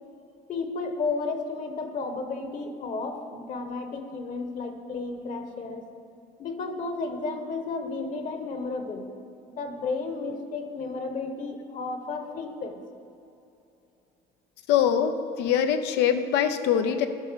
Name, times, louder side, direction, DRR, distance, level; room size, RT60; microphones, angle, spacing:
voice 1, 0.5-5.9 6.4-9.1 9.5-12.8, left 3 dB, 50° left, 6 dB, 1.2 m, -33 dB
voice 2, 14.7-17.1, left 9 dB, 90° left, 8 dB, 0.7 m, -23 dB
13.0 x 5.3 x 6.8 m, 2.7 s
cardioid pair, 110°, 17 cm